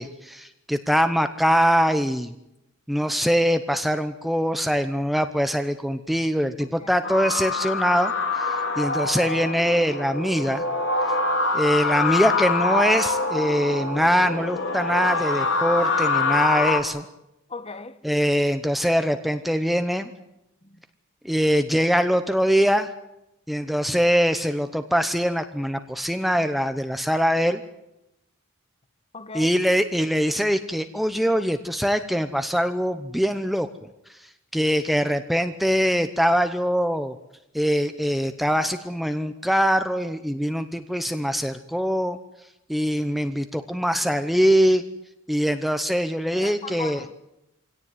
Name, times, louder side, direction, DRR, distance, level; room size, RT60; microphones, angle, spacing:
voice 1, 0.0-2.3 2.9-10.6 11.5-17.0 18.0-20.1 21.2-22.9 23.5-27.6 29.3-33.7 34.5-37.1 37.5-42.2 42.7-44.8 45.3-47.0, equal, ahead, 0.8 m, -23 dB
sound 1, 7.0-16.8, left 3 dB, 60° left, 2.7 m, -25 dB
voice 2, 17.5-18.0 29.1-29.5 46.3-47.1, left 4 dB, 30° left, 1.2 m, -37 dB
25.0 x 17.5 x 9.6 m
head